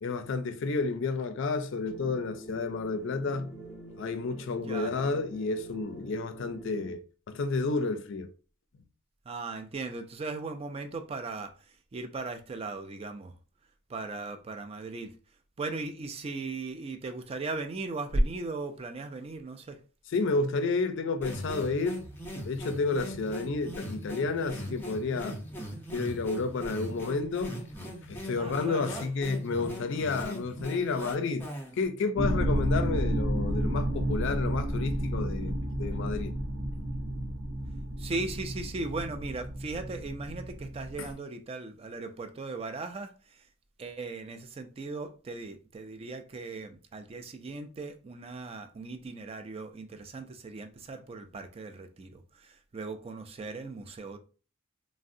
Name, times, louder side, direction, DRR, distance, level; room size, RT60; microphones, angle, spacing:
voice 1, 0.0-3.5 3.9-8.3 20.1-22.0 22.4-25.4 25.9-27.6 28.1-36.3 41.0-41.1, left 3 dB, 60° left, 0.4 m, -31 dB
sound 1, 1.9-7.0, right 2 dB, 15° right, 0.9 m, -46 dB
voice 2, 9.3-13.3 13.9-15.1 15.6-19.8 28.4-29.0 38.0-43.5 43.8-54.2, right 2 dB, 30° right, 0.3 m, -37 dB
sound 2, 21.2-31.8, equal, 10° left, 0.6 m, -40 dB
sound 3, 32.2-41.1, right 1 dB, 60° right, 0.6 m, -31 dB
3.6 x 2.0 x 2.5 m
head